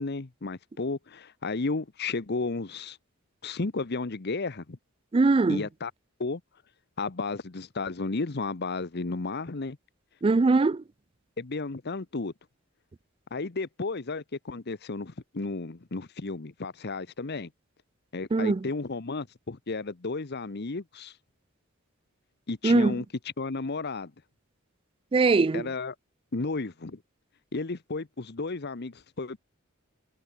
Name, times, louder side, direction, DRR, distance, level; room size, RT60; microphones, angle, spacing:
voice 1, 0.0-3.0 3.4-4.8 5.5-5.9 6.2-6.4 7.0-9.8 11.4-12.3 13.3-17.5 18.1-21.1 22.5-23.0 23.4-24.1 25.5-25.9 26.3-27.0 27.5-29.4, left 3 dB, 50° left, 0.9 m, -33 dB
voice 2, 5.1-5.6 10.2-10.8 18.3-18.7 22.6-23.0 25.1-25.7, right 3 dB, 25° right, 0.4 m, -21 dB
head